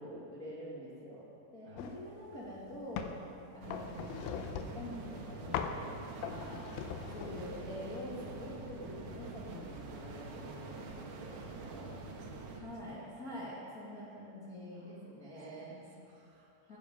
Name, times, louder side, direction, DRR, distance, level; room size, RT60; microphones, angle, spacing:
voice 1, 0.0-3.1 3.5-6.6 7.1-11.9 12.6-15.8 16.7-16.8, equal, 70° left, -8 dB, 0.8 m, -46 dB
voice 2, 1.6-2.6 6.2-7.6 11.3-13.4 13.9-14.1 14.7-16.8, right 2 dB, 60° right, -3 dB, 4.0 m, -61 dB
sound 1, 1.8-2.0 2.5-3.2 3.7-4.9 5.5-5.9 6.2-7.6, left 8 dB, 90° left, 2.4 m, -40 dB
sound 2, 3.6-12.6, right 3 dB, 90° right, 1.7 m, -46 dB
16.5 x 10.0 x 5.2 m, 2.7 s
omnidirectional pair, 5.5 m